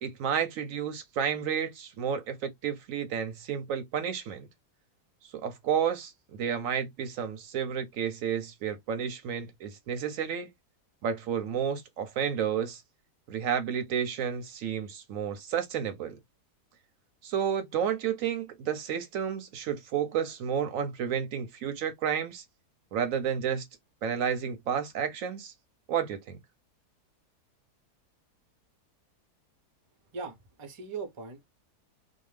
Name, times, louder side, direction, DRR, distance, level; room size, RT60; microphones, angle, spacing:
voice 1, 0.0-4.5 5.3-10.5 11.0-12.8 13.3-16.2 17.2-22.4 22.9-23.6 24.0-25.5 25.9-26.4, right 8 dB, 65° right, 0.9 m, -31 dB
voice 2, 30.1-31.5, right 5 dB, 50° right, 0.3 m, -39 dB
2.6 x 2.2 x 3.2 m
omnidirectional pair, 1.7 m